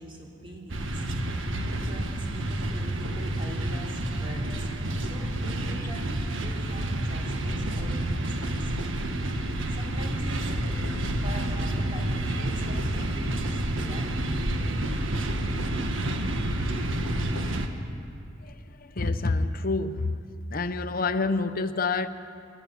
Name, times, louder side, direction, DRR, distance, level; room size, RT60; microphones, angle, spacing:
voice 1, 0.0-4.7 5.0-9.2 9.7-16.0, equal, 25° right, 3.3 m, -43 dB
sound 1, 0.7-17.7, right 1 dB, 75° right, 1.5 m, -29 dB
voice 2, 18.4-20.2 20.5-22.1, left 3 dB, 45° left, 0.8 m, -28 dB
29.5 x 10.5 x 8.7 m
head